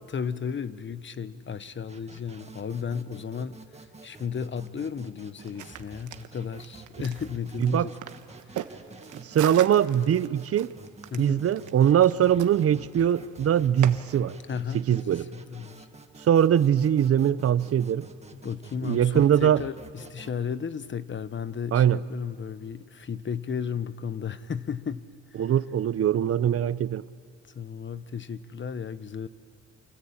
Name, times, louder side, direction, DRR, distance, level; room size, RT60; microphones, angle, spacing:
voice 1, 0.1-7.9 8.5-8.8 11.1-11.4 14.5-15.9 18.3-25.0 25.3-25.5 27.5-29.3, left 7 dB, 40° left, 1.2 m, -34 dB
sound 1, 1.9-20.3, right 3 dB, 20° right, 1.9 m, -49 dB
sound 2, 5.4-13.9, right 11 dB, 80° right, 1.3 m, -41 dB
voice 2, 9.1-10.7 11.2-14.4 14.7-15.3 16.3-18.1 18.8-19.6 21.7-22.0 25.4-27.0, right 9 dB, 50° right, 0.8 m, -22 dB
27.0 x 24.0 x 8.8 m
cardioid pair, 90°, 30 cm